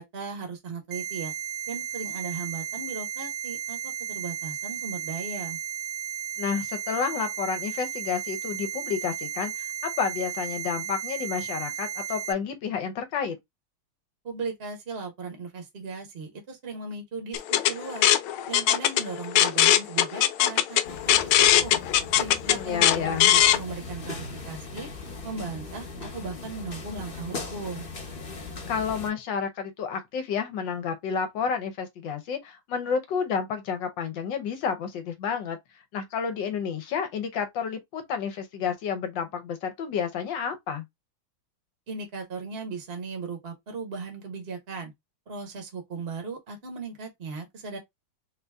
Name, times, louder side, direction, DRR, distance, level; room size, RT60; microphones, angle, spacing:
voice 1, 0.0-1.3 1.7-5.6 14.2-18.1 18.5-21.8 22.2-24.9 25.2-27.9 41.9-44.9 45.3-47.8, right 4 dB, 40° right, 1.1 m, -37 dB
sound 1, 0.9-12.3, right 9 dB, 75° right, 0.8 m, -34 dB
voice 2, 6.4-13.4 22.4-23.3 28.7-35.6 35.9-40.8, left 6 dB, 70° left, 1.4 m, -30 dB
sound 2, 17.3-23.6, left 12 dB, 90° left, 1.4 m, -21 dB
sound 3, 20.8-29.1, left 3 dB, 35° left, 1.0 m, -39 dB
3.9 x 2.7 x 3.4 m
omnidirectional pair, 2.2 m